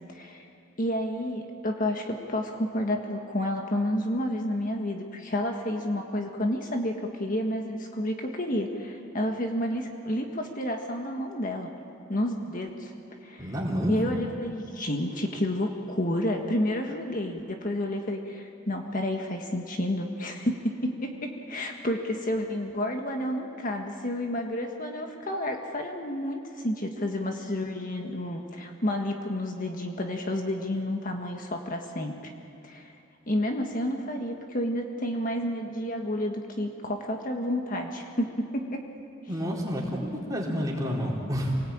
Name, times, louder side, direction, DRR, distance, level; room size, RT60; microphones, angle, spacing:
voice 1, 0.1-0.5 0.8-11.7 12.1-12.9 13.2-13.5 13.9-32.3 32.6-32.9 33.3-38.8, left 1 dB, 40° left, 3 dB, 1.7 m, -30 dB
voice 2, 13.4-14.0 39.3-41.5, equal, 15° right, -3 dB, 4.1 m, -29 dB
27.0 x 19.0 x 8.9 m, 2.6 s
head